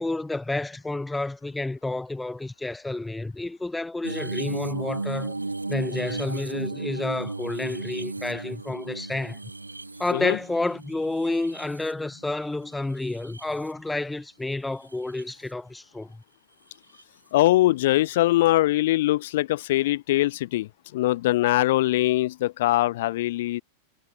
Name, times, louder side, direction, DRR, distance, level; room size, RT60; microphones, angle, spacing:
voice 1, 0.0-5.4 5.7-9.4 10.0-16.2, left 2 dB, 5° left, 4.0 m, -30 dB
sound 1, 4.0-12.4 12.9-13.7 14.9-15.2 17.0-17.1, right 3 dB, 80° right, 1.7 m, -35 dB
voice 2, 17.3-23.6, left 16 dB, 55° left, 2.8 m, -22 dB
figure-of-eight pair, 90°, 0 cm